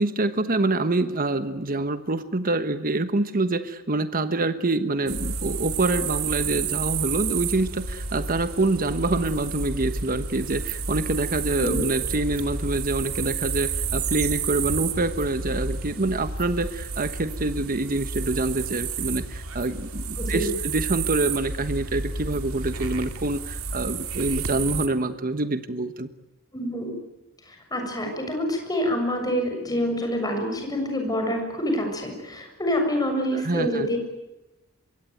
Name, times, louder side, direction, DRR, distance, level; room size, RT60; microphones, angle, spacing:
voice 1, 0.0-26.1 33.3-33.9, right 2 dB, 40° right, 10 dB, 1.3 m, -26 dB
sound 1, 5.1-24.9, right 5 dB, 75° right, 2.5 m, -30 dB
voice 2, 20.2-20.5 26.5-26.9 27.5-34.0, equal, 15° left, 3 dB, 7.0 m, -27 dB
25.5 x 23.0 x 9.4 m, 1.0 s
head